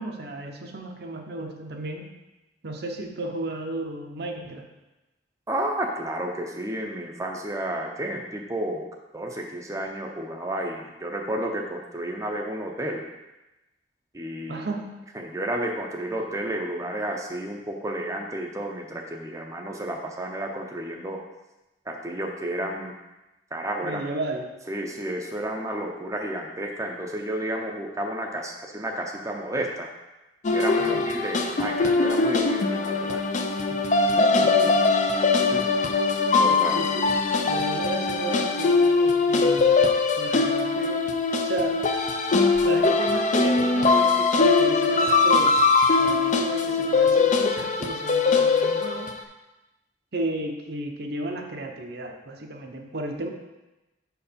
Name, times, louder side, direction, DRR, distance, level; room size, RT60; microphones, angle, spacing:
voice 1, 0.0-2.1 2.6-4.7 14.5-14.9 23.8-24.5 30.8-31.1 34.2-34.8 36.7-37.1 37.5-41.0 41.4-41.9 42.6-45.6 46.0-49.1 50.1-53.3, right 2 dB, 65° right, 3 dB, 0.8 m, -33 dB
voice 2, 5.5-8.9 9.1-13.1 14.1-14.7 15.1-21.2 21.9-22.9 23.5-24.0 24.7-29.9 30.5-33.2 35.2-35.6 36.4-36.8, right 1 dB, 20° right, 0 dB, 0.6 m, -31 dB
sound 1, 30.4-49.2, left 4 dB, 45° left, 0.5 m, -21 dB
5.9 x 4.7 x 5.1 m, 1.0 s
head